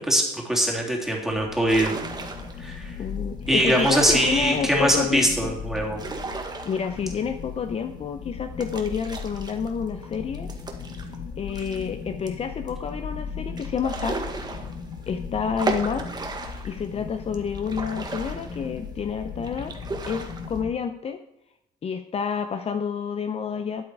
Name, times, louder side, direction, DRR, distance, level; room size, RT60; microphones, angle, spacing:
voice 1, 0.1-1.9 2.6-2.9 3.5-6.0, equal, ahead, -2 dB, 3.4 m, -22 dB
sound 1, 1.3-20.7, left 5 dB, 60° left, 1.6 m, -37 dB
sound 2, 1.7-2.7 3.4-4.9 5.8-7.4 7.7-7.8 8.6-11.9 12.3-12.4 12.7-12.8 13.6-15.1 15.6-16.8 17.3-19.0 19.4-20.6, right 3 dB, 25° right, 1.7 m, -35 dB
voice 2, 2.6-5.6 6.6-10.5 11.4-14.5 15.1-16.2 16.6-19.7 20.1-21.2 21.8-23.8, left 6 dB, 35° left, 8 dB, 0.7 m, -29 dB
12.5 x 8.6 x 4.9 m, 0.85 s
cardioid pair, 110°, 17 cm